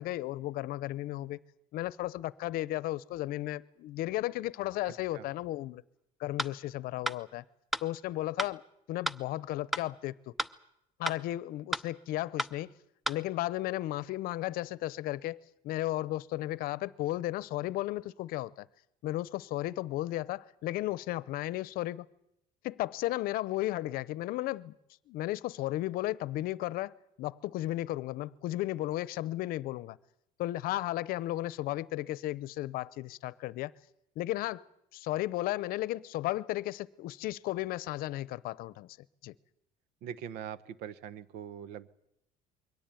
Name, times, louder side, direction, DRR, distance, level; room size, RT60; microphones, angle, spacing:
voice 1, 0.0-1.4 1.7-5.8 6.2-7.4 7.8-8.6 8.9-10.3 11.0-12.7 13.1-15.4 15.6-18.7 19.0-22.1 22.6-24.8 25.1-30.0 30.4-33.7 34.2-34.6 34.9-38.9 39.2-39.3, left 16 dB, 65° left, 0.8 m, -34 dB
sound 1, 6.4-6.5 7.1-7.2 7.7-7.9 8.4-8.5 9.1-9.2 9.7-9.9 10.4-10.5 11.1-11.2 11.7-11.9 12.4-12.5 13.1-13.2, equal, ahead, 0.8 m, -32 dB
voice 2, 40.0-41.9, right 9 dB, 75° right, 1.1 m, -42 dB
23.0 x 17.5 x 9.1 m
cardioid pair, 125°, 16 cm